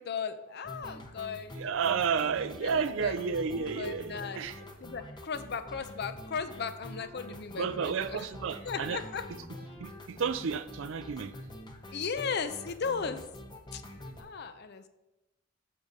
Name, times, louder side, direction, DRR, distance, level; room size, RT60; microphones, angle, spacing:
voice 1, 0.0-1.5 2.6-3.2 3.5-4.4 4.8-8.3 8.6-9.2 11.9-13.3 13.7-13.8 14.2-14.9, left 5 dB, 55° left, 11 dB, 0.6 m, -36 dB
sound 1, 0.6-14.2, left 1 dB, 20° left, 1.0 m, -46 dB
voice 2, 1.5-4.6 7.6-9.0 9.8-11.3, right 6 dB, 70° right, 12 dB, 0.4 m, -31 dB
8.6 x 6.5 x 4.1 m, 0.98 s
head